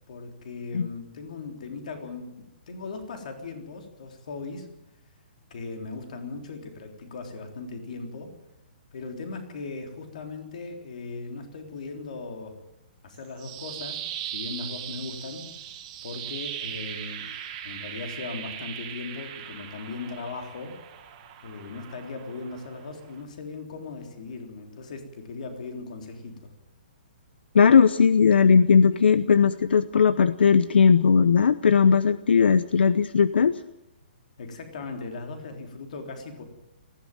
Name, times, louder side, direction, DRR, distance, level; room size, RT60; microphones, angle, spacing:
voice 1, 0.1-4.7 5.5-8.3 8.9-12.6 13.0-15.5 16.0-17.3 17.6-20.8 21.4-26.5 29.1-29.2 34.4-36.4, left 4 dB, 45° left, 4 dB, 3.8 m, -38 dB
sound 1, 13.1-23.2, right 10 dB, 20° right, 2.1 m, -39 dB
voice 2, 27.5-33.5, left 6 dB, 85° left, 14 dB, 0.8 m, -18 dB
19.0 x 16.0 x 9.2 m, 0.87 s
hypercardioid pair, 180°, 6 cm